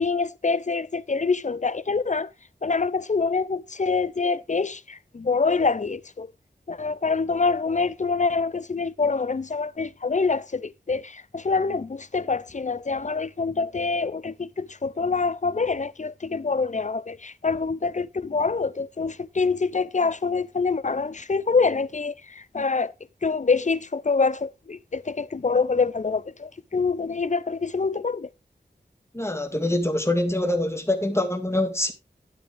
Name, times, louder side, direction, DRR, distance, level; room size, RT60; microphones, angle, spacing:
voice 1, 0.0-2.3 2.6-6.3 6.7-22.9 23.2-28.3, left 4 dB, 40° left, 0.6 m, -25 dB
voice 2, 29.1-31.9, left 1 dB, 15° left, 2.1 m, -24 dB
10.5 x 8.9 x 3.4 m
wide cardioid pair, 60°, 18 cm